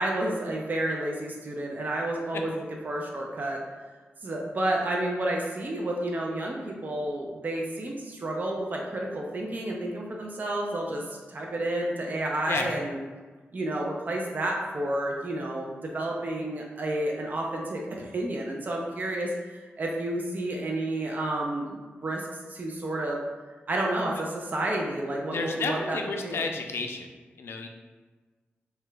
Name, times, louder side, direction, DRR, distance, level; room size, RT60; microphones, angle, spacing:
voice 1, 0.0-3.6 4.2-13.0 13.5-23.2 23.7-26.5, right 1 dB, 45° right, -1 dB, 0.5 m, -30 dB
voice 2, 25.3-27.1 27.4-27.7, left 4 dB, 75° left, 4 dB, 0.3 m, -31 dB
2.9 x 2.2 x 3.3 m, 1.3 s
cardioid pair, 75°, 4 cm